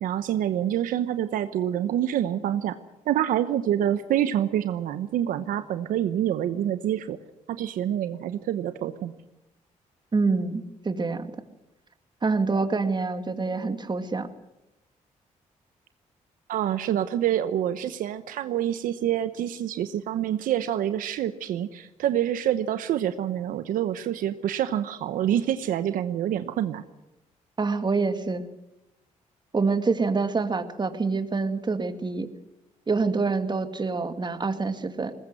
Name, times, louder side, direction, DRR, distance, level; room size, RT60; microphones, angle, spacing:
voice 1, 0.0-2.7 3.1-7.2 7.5-9.1 16.5-26.8, right 11 dB, 80° right, 11 dB, 1.0 m, -27 dB
voice 2, 10.1-11.3 12.2-14.3 27.6-28.4 29.5-32.3 32.9-35.1, right 4 dB, 30° right, 9 dB, 2.2 m, -26 dB
20.5 x 20.0 x 7.8 m, 0.92 s
supercardioid pair, 65°, 14 cm